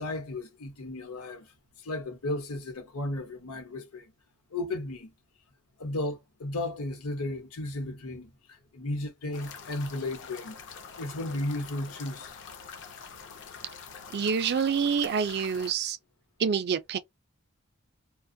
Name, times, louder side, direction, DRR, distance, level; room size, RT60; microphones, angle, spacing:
voice 1, 0.0-1.5 1.8-4.1 4.5-5.1 5.8-10.6 11.0-12.4, left 2 dB, 80° left, 0.9 m, -34 dB
sound 1, 9.3-15.7, left 6 dB, 55° left, 0.5 m, -45 dB
voice 2, 14.1-16.0 16.4-17.0, right 6 dB, 50° right, 0.4 m, -27 dB
2.5 x 2.1 x 2.6 m
head